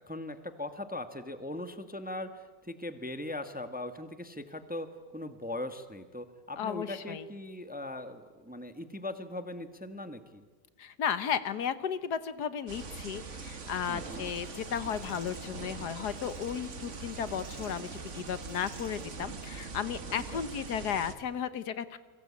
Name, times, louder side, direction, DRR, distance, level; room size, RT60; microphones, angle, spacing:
voice 1, 0.0-10.5 13.8-14.2 20.3-20.4, left 1 dB, 5° right, 9 dB, 1.1 m, -40 dB
voice 2, 6.6-7.2 10.8-22.0, left 8 dB, 70° left, 13 dB, 1.6 m, -34 dB
sound 1, 12.7-21.1, right 4 dB, 45° right, 1.8 m, -42 dB
sound 2, 14.2-19.2, right 2 dB, 90° right, 5.8 m, -57 dB
29.5 x 22.5 x 8.5 m, 1.3 s
omnidirectional pair, 1.8 m